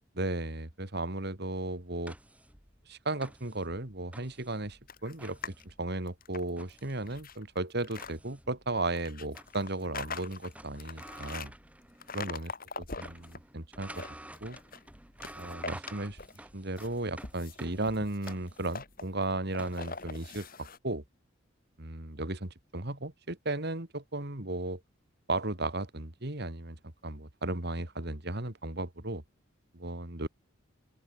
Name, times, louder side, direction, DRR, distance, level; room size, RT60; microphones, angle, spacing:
voice 1, 0.1-2.1 2.9-5.4 5.6-11.5 12.1-12.5 12.8-14.1 14.4-14.6 15.3-16.2 16.5-21.0 21.8-24.8 25.3-26.8 27.0-29.2 29.7-30.3, right 2 dB, 55° right, 2.7 m, -35 dB
sound 1, 1.7-12.4 12.7-20.1, right 1 dB, 5° right, 2.5 m, -51 dB
sound 2, 4.9-5.6 6.0-8.1 9.0-11.5 12.0-13.4 13.8-14.9 15.2-16.5 16.8-20.8, left 4 dB, 45° left, 4.5 m, -43 dB
open air
head